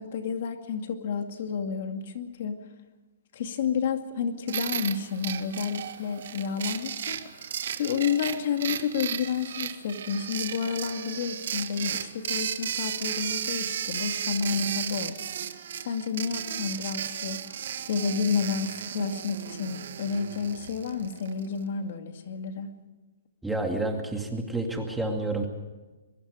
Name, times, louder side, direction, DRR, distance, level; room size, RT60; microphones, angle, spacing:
voice 1, 0.0-2.6 3.3-15.2 15.8-22.7, left 6 dB, 50° left, 6 dB, 2.4 m, -30 dB
sound 1, 4.5-21.5, right 9 dB, 60° right, 1.7 m, -34 dB
voice 2, 23.4-25.5, right 2 dB, 5° right, 2 dB, 2.3 m, -29 dB
23.5 x 22.5 x 5.2 m, 1.2 s
hypercardioid pair, 160°, 0 cm